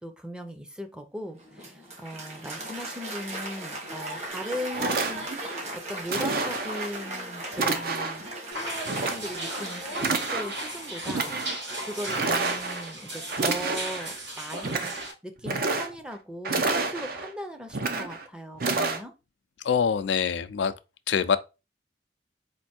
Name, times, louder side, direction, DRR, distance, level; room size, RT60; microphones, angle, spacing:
voice 1, 0.0-5.3 5.7-8.4 9.0-14.8 15.2-19.1, equal, 5° right, 0.6 m, -38 dB
Applause, 1.3-10.9, right 1 dB, 40° right, 1.4 m, -38 dB
sound 1, 4.3-4.4 4.7-5.6 6.1-6.9 7.5-8.3 8.9-9.6 9.9-10.7 11.0-11.6 12.1-12.9 13.3-14.1 14.5-15.1 15.4-16.1 16.4-17.3 17.7-18.2 18.6-19.0, right 3 dB, 55° right, 0.7 m, -29 dB
sound 2, 8.5-15.1, right 1 dB, 85° right, 2.8 m, -36 dB
voice 2, 19.6-20.7 21.1-21.4, left 7 dB, 90° left, 0.4 m, -24 dB
4.4 x 2.6 x 4.3 m
head